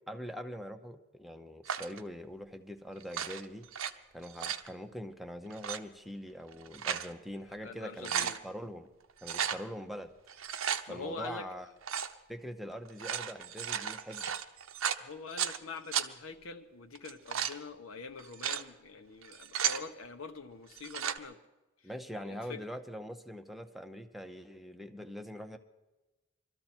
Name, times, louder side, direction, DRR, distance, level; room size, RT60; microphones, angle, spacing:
voice 1, 0.1-3.7 4.1-8.9 9.2-10.1 10.9-11.7 12.3-14.3 21.8-25.6, equal, ahead, 6 dB, 0.7 m, -43 dB
sound 1, 1.6-2.0 3.0-3.9 4.2-4.7 5.5-5.8 6.5-7.1 7.5-7.6 7.9-8.4 9.2-9.6 10.3-10.8 11.8-12.1 12.9-15.6 15.9-16.1 16.9-17.6 18.2-18.6 19.2-19.8 20.7-21.2, right 8 dB, 85° right, 0.8 m, -34 dB
voice 2, 7.5-8.4 10.9-11.5 15.0-21.4 21.8-21.9 22.2-22.6, left 4 dB, 80° left, 7 dB, 1.1 m, -45 dB
21.5 x 13.5 x 4.4 m, 1.1 s
head